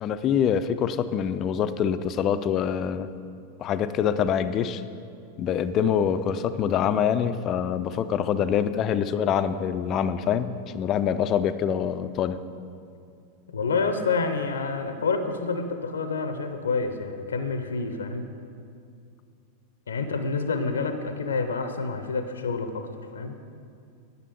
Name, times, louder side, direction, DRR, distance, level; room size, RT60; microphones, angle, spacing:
voice 1, 0.0-3.1 3.6-4.8 5.4-12.4, left 8 dB, 35° left, 11 dB, 0.4 m, -25 dB
voice 2, 13.5-18.3 19.9-23.4, left 4 dB, 70° left, 8 dB, 0.6 m, -28 dB
10.5 x 6.7 x 6.6 m, 2.4 s
figure-of-eight pair, 90°, 0 cm